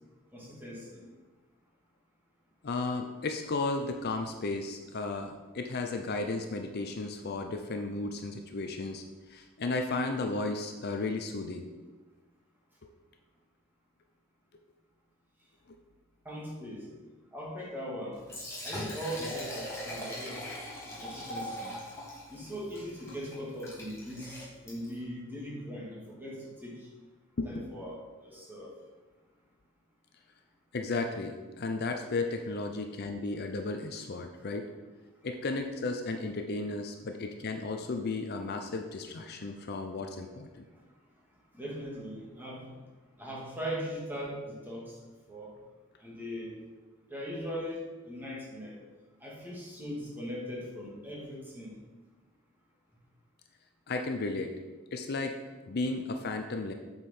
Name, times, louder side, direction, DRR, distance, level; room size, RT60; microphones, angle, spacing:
voice 1, 0.3-1.0 16.3-16.9 17.3-18.2 18.6-20.4 21.0-21.8 22.3-26.9 27.4-28.7 41.5-42.8 43.2-44.9 45.3-45.5 46.0-46.6 47.1-48.8 49.2-51.8, equal, 10° right, -5 dB, 2.1 m, -40 dB
voice 2, 2.6-9.0 9.3-11.7 12.8-12.9 15.7-15.8 27.4-27.7 30.7-34.7 35.2-40.6 53.9-54.5 54.9-55.4 55.7-56.7, left 3 dB, 50° left, 5 dB, 0.6 m, -34 dB
Liquid, 18.1-25.0, equal, 15° left, 2.3 m, -41 dB
8.0 x 5.6 x 4.4 m, 1.3 s
head